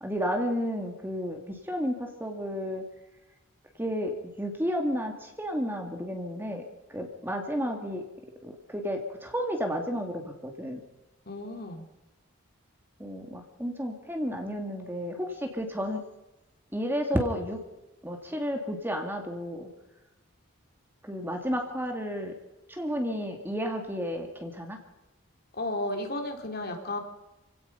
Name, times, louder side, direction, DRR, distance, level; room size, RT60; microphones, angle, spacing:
voice 1, 0.0-2.8 3.8-6.6 6.9-8.0 8.4-10.8 13.0-16.0 16.7-17.6 18.0-19.7 21.0-22.3 22.7-24.8, equal, 10° right, 4 dB, 2.2 m, -32 dB
voice 2, 11.3-11.8 25.5-27.0, left 1 dB, 45° left, 4 dB, 3.4 m, -33 dB
27.5 x 17.0 x 5.6 m, 0.96 s
head